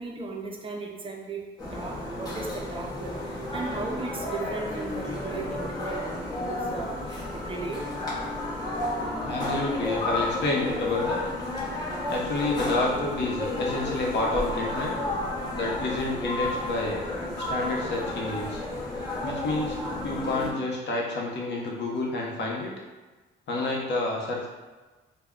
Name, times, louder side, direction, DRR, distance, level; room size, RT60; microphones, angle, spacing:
voice 1, 0.0-7.8, right 3 dB, 25° right, 0 dB, 0.5 m, -36 dB
sound 1, 1.6-20.5, left 1 dB, 20° left, 0.8 m, -32 dB
voice 2, 9.2-11.2 12.1-14.9 15.5-17.0 17.4-18.6 19.2-19.8 20.0-22.7 23.5-24.5, left 2 dB, 60° left, -2 dB, 0.7 m, -29 dB
2.1 x 2.1 x 3.6 m, 1.3 s
cardioid pair, 90°, 20 cm